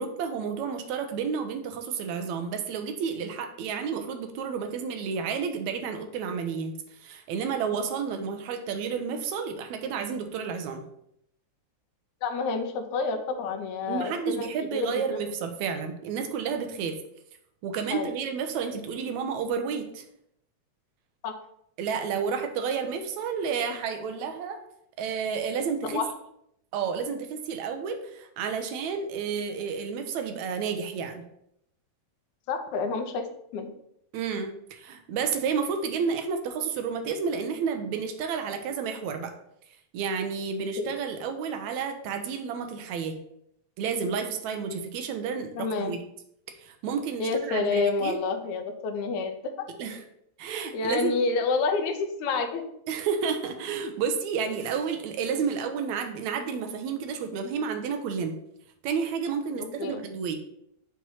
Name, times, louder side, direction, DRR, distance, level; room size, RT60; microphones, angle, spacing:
voice 1, 0.0-10.8 13.9-17.0 17.6-20.0 21.8-24.6 25.0-26.0 26.7-31.2 34.1-39.3 39.9-43.2 43.8-46.0 46.6-48.2 49.8-50.0 50.4-51.1 52.9-58.3 58.8-60.4, right 6 dB, 80° right, 6 dB, 1.9 m, -31 dB
voice 2, 12.2-14.1 14.4-15.2 17.9-18.1 21.2-21.3 25.8-26.1 32.5-33.2 33.5-33.7 40.8-41.0 45.6-45.9 47.2-49.3 50.7-52.6 59.6-60.0, left 4 dB, 85° left, 6 dB, 2.0 m, -28 dB
6.0 x 3.0 x 5.4 m, 0.75 s
omnidirectional pair, 3.3 m